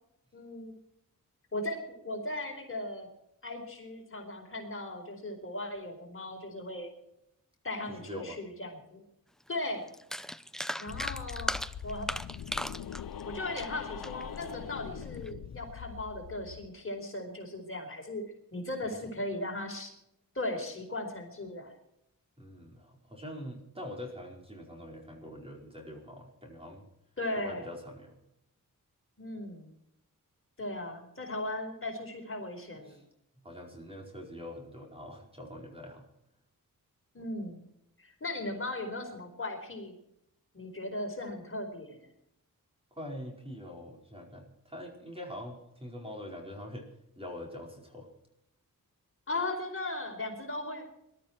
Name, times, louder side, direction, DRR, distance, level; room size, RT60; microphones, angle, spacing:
voice 1, 0.3-0.8 1.5-3.1 3.4-6.9 7.6-9.0 9.5-9.9 10.8-11.6 11.8-12.1 13.2-18.2 18.5-19.9 20.3-21.7 27.2-27.7 29.2-29.7 30.6-33.0 37.1-37.6 38.0-39.9 40.5-42.0 49.3-50.8, left 2 dB, 40° left, 2 dB, 4.6 m, -37 dB
voice 2, 7.9-8.4 18.8-19.1 22.4-26.8 27.4-28.2 32.8-33.0 33.4-36.1 42.9-46.9 47.2-48.1, left 1 dB, 15° right, 0 dB, 4.9 m, -44 dB
sound 1, 9.5-9.6 9.9-14.5 15.0-15.3, equal, ahead, 0.6 m, -37 dB
sound 2, 10.9-16.7, left 9 dB, 85° left, 0.8 m, -42 dB
21.5 x 12.5 x 4.6 m, 0.79 s
wide cardioid pair, 115°, 34 cm